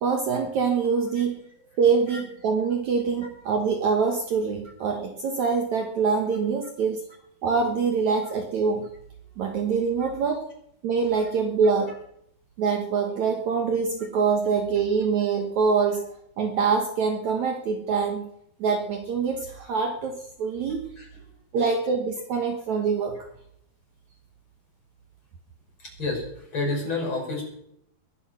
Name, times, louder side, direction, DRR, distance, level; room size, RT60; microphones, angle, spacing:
voice 1, 0.0-1.4 1.8-7.0 7.4-8.9 9.4-10.5 10.8-11.9 12.6-16.0 16.4-18.3 18.6-20.8 21.5-23.2, right 5 dB, 60° right, 3 dB, 2.4 m, -24 dB
voice 2, 25.8-27.4, left 3 dB, 35° left, 0 dB, 6.6 m, -29 dB
21.5 x 11.0 x 5.8 m, 0.72 s
omnidirectional pair, 4.3 m